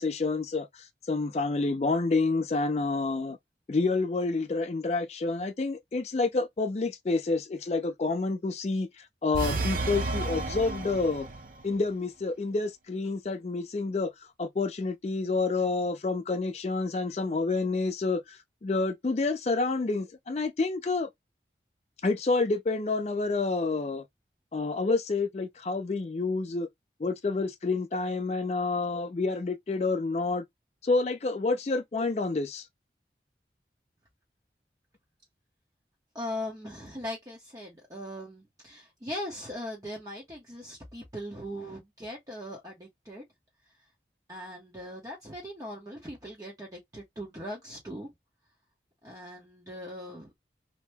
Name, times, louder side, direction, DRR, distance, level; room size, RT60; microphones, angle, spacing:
voice 1, 0.0-3.4 3.7-8.9 9.2-11.3 11.6-14.1 14.4-21.1 22.0-24.0 24.5-26.7 27.0-30.4 30.8-32.6, left 3 dB, 35° left, 0.4 m, -28 dB
sound 1, 9.3-11.6, right 2 dB, 50° right, 0.6 m, -31 dB
voice 2, 36.1-43.2 44.3-48.1 49.0-50.3, left 1 dB, 20° right, 0.8 m, -40 dB
2.8 x 2.1 x 3.3 m
head